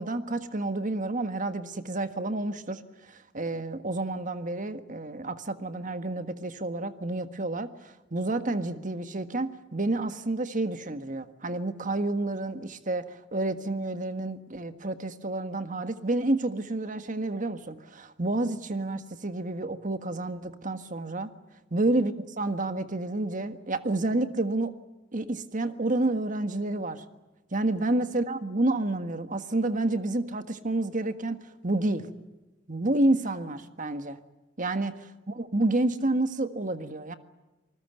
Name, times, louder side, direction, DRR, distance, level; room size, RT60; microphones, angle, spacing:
voice 1, 0.0-21.3 21.7-24.7 25.1-27.0 27.5-31.4 31.6-32.1 32.7-34.2 34.6-34.9 35.3-37.1, right 2 dB, 40° right, 10 dB, 1.6 m, -29 dB
27.5 x 20.0 x 9.2 m, 1.1 s
head